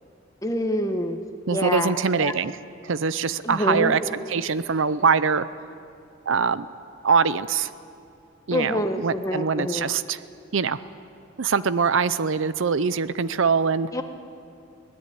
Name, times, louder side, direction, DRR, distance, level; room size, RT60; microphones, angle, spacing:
voice 1, 0.4-1.2 1.5-2.3 3.4-4.0 8.5-9.8 13.9-14.0, left 1 dB, 15° left, 6 dB, 1.3 m, -26 dB
voice 2, 1.5-2.5 2.8-4.0 4.3-5.4 6.3-6.7 7.0-7.7 8.5-10.2 10.5-10.8 11.4-13.9, right 5 dB, 70° right, 15 dB, 0.6 m, -23 dB
23.0 x 17.5 x 9.4 m, 2.7 s
head